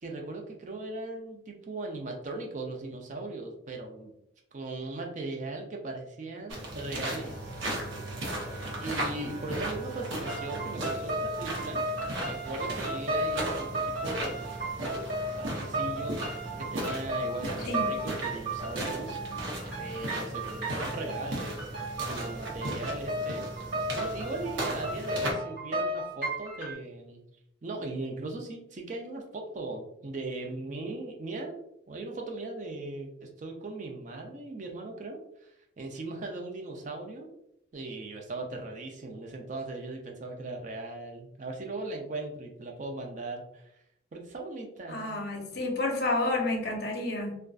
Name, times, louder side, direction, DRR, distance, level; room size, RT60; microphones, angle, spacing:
voice 1, 0.0-4.1 4.5-7.5 8.8-11.8 12.2-14.5 15.4-16.2 16.6-19.2 19.8-21.7 22.0-23.5 23.9-27.2 27.6-31.6 31.9-37.3 37.7-43.8 44.1-45.2, right 2 dB, 40° right, 2 dB, 0.4 m, -38 dB
sound 1, 6.5-25.3, right 1 dB, 80° right, 0.7 m, -36 dB
Bowed string instrument, 6.9-12.2, right 3 dB, 5° left, 0.8 m, -46 dB
sound 2, 10.3-26.7, right 1 dB, 65° right, 1.3 m, -35 dB
voice 2, 44.9-47.4, left 2 dB, 55° left, 1 dB, 0.5 m, -30 dB
2.5 x 2.2 x 2.3 m, 0.78 s
head